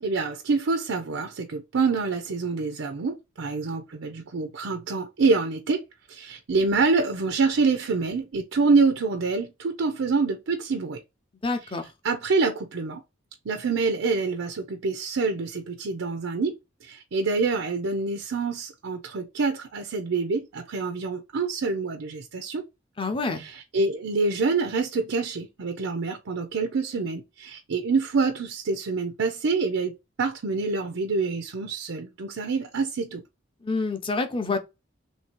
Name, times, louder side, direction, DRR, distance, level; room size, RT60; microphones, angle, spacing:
voice 1, 0.0-5.8 6.1-11.0 12.0-13.0 13.5-22.6 23.3-33.2, right 4 dB, 85° right, 0.5 m, -26 dB
voice 2, 11.4-11.8 23.0-23.4 33.6-34.6, left 3 dB, 25° left, 0.6 m, -27 dB
3.2 x 2.7 x 4.4 m
head